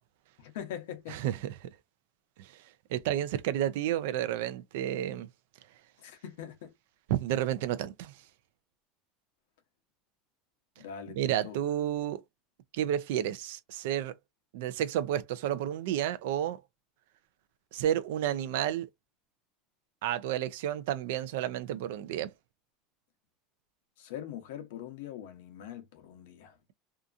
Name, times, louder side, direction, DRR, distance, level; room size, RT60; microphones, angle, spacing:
voice 1, 0.4-1.3 6.0-6.7 10.8-11.6 24.0-26.6, left 10 dB, 90° left, 0.8 m, -43 dB
voice 2, 1.1-1.7 2.4-2.5 2.9-5.3 7.1-8.1 11.1-12.2 12.7-14.1 14.5-16.6 17.7-18.9 20.0-22.3, right 11 dB, 85° right, 0.4 m, -31 dB
2.7 x 2.3 x 2.4 m
supercardioid pair, 140°, 0 cm